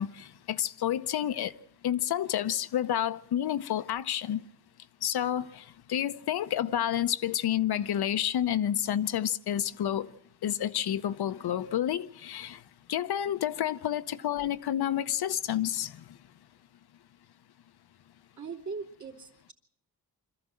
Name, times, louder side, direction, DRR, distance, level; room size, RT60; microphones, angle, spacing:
voice 1, 0.0-1.5 1.8-4.4 5.0-10.1 10.4-12.6 12.9-16.0, left 11 dB, 80° left, 0.8 m, -29 dB
voice 2, 18.4-19.5, right 4 dB, 45° right, 3.0 m, -40 dB
25.0 x 14.0 x 7.6 m
cardioid pair, 95°, 38 cm